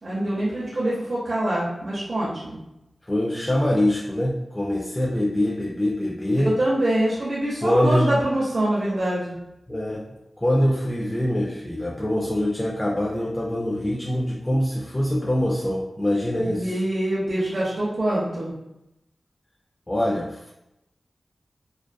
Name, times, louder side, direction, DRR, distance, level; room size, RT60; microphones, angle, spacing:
voice 1, 0.0-2.6 6.6-9.4 16.4-18.5, right 1 dB, 40° right, -9 dB, 0.7 m, -25 dB
voice 2, 3.1-6.5 7.6-8.1 9.7-10.1 10.4-16.8 19.9-20.5, left 1 dB, 15° left, -4 dB, 0.3 m, -24 dB
2.5 x 2.3 x 2.3 m, 0.87 s
wide cardioid pair, 90°, 0 cm